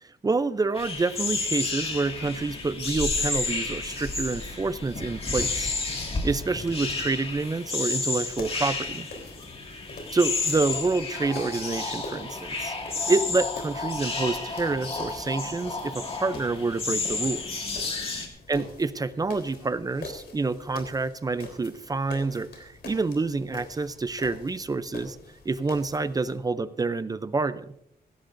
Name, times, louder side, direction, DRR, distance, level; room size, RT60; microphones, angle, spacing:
voice 1, 0.0-9.1 10.1-12.7 13.1-17.7 18.5-25.2 25.5-27.7, right 3 dB, 25° right, 14 dB, 0.5 m, -28 dB
sound 1, 0.8-18.3, left 3 dB, 35° left, 2.1 m, -31 dB
sound 2, 8.0-26.4, left 2 dB, 85° left, 3.5 m, -45 dB
17.5 x 16.0 x 2.6 m, 0.76 s
wide cardioid pair, 175°, 16 cm